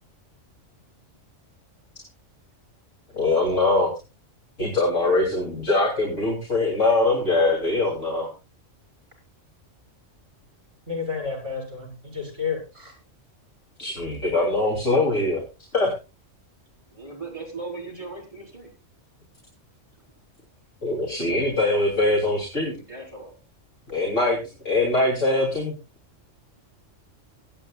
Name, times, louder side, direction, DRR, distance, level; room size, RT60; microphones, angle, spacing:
voice 1, 3.1-3.9 4.6-8.3 13.8-15.4 15.7-15.9 20.8-22.7 23.9-24.4 24.7-25.7, left 2 dB, 70° left, -2 dB, 3.5 m, -22 dB
voice 2, 10.9-12.9, left 5 dB, 55° right, 2 dB, 6.1 m, -31 dB
voice 3, 17.0-18.7 22.9-23.3, right 3 dB, 25° right, -2 dB, 3.9 m, -37 dB
23.0 x 9.0 x 2.4 m, 0.29 s
omnidirectional pair, 1.3 m